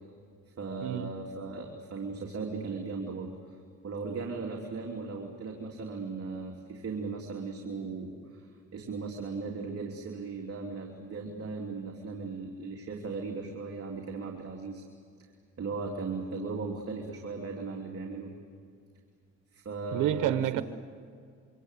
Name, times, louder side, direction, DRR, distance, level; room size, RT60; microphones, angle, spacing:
voice 1, 0.6-3.3 3.8-14.8 15.6-18.3 19.5-20.6, right 4 dB, 50° right, 0 dB, 3.3 m, -37 dB
voice 2, 19.9-20.6, right 12 dB, 90° right, 10 dB, 1.1 m, -28 dB
27.0 x 25.0 x 8.4 m, 2.2 s
cardioid pair, 90°, 30 cm